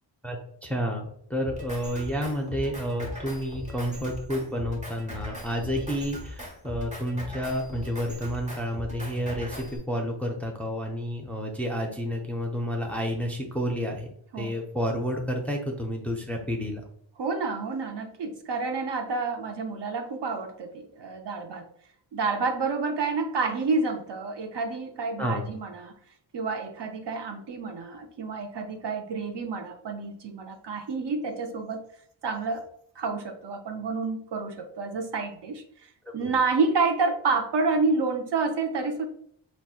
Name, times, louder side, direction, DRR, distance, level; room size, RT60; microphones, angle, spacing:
voice 1, 0.2-16.8 25.2-25.5 36.0-36.3, equal, 5° left, 1 dB, 0.4 m, -30 dB
Drum kit, 1.4-9.8, left 1 dB, 15° right, 0.9 m, -39 dB
voice 2, 17.2-21.6 22.1-25.9 26.3-31.8 32.2-32.6 33.0-39.1, right 4 dB, 60° right, 4 dB, 0.6 m, -29 dB
4.0 x 2.3 x 2.4 m, 0.66 s
wide cardioid pair, 100°, 47 cm